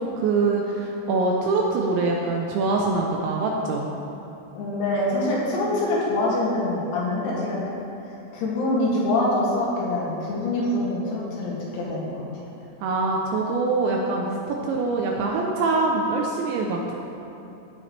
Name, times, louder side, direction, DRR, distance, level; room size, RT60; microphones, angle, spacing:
voice 1, 0.0-3.9 12.8-17.0, right 3 dB, 80° right, 0 dB, 2.7 m, -24 dB
voice 2, 4.6-7.6 8.0-12.4, left 1 dB, 90° left, -6 dB, 5.1 m, -25 dB
15.0 x 10.0 x 3.3 m, 2.9 s
omnidirectional pair, 6.0 m